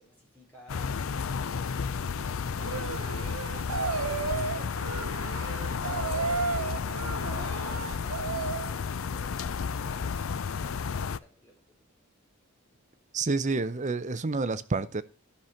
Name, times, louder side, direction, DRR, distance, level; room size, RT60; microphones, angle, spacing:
voice 1, 0.0-4.5 4.7-7.1 8.0-11.6, right 1 dB, 10° left, 4.4 m, -58 dB
sound 1, 0.7-11.2, left 6 dB, 65° left, 0.5 m, -32 dB
sound 2, 2.6-8.7, right 4 dB, 75° right, 0.9 m, -33 dB
voice 2, 13.1-15.0, right 3 dB, 35° right, 0.6 m, -29 dB
11.5 x 5.9 x 6.3 m
head